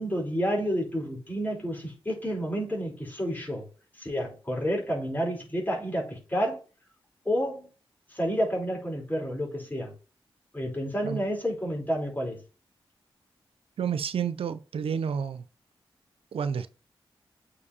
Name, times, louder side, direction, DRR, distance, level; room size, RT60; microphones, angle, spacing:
voice 1, 0.0-3.7 4.0-6.6 7.3-7.7 8.1-9.9 10.5-12.4, equal, 20° left, 3.6 m, -30 dB
voice 2, 13.8-15.4 16.3-16.7, right 7 dB, 75° right, 0.4 m, -30 dB
8.3 x 4.8 x 2.7 m
cardioid pair, 50°, 10 cm